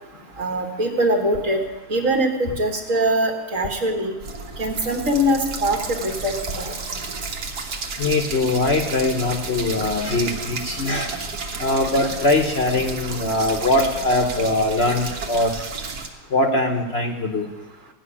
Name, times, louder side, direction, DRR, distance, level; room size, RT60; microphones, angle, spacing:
voice 1, 0.4-1.6 1.9-4.1 4.6-6.7, right 1 dB, 50° right, 2 dB, 1.8 m, -22 dB
sound 1, 4.2-16.1, right 4 dB, 70° right, 1.8 m, -32 dB
voice 2, 8.0-11.1 11.6-15.6 16.3-17.5, left 2 dB, 45° left, 3 dB, 1.0 m, -21 dB
15.5 x 6.0 x 9.8 m, 1.1 s
omnidirectional pair, 1.8 m